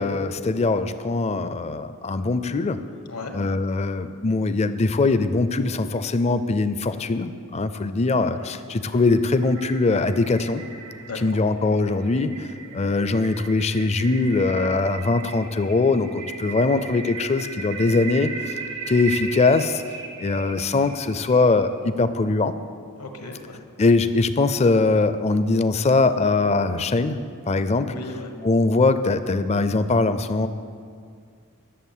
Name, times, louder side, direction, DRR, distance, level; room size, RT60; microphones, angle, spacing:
voice 1, 0.0-2.8 3.3-10.6 11.2-12.5 12.7-18.3 18.9-19.8 20.2-22.5 23.8-27.2 27.5-27.9 28.4-30.5, left 3 dB, 30° left, 12 dB, 0.4 m, -21 dB
sound 1, 8.3-21.7, right 5 dB, 90° right, 1.5 m, -37 dB
voice 2, 11.0-11.4 23.0-23.6 27.9-28.3, left 3 dB, 80° left, 5 dB, 1.3 m, -36 dB
11.0 x 7.0 x 7.3 m, 2.2 s
head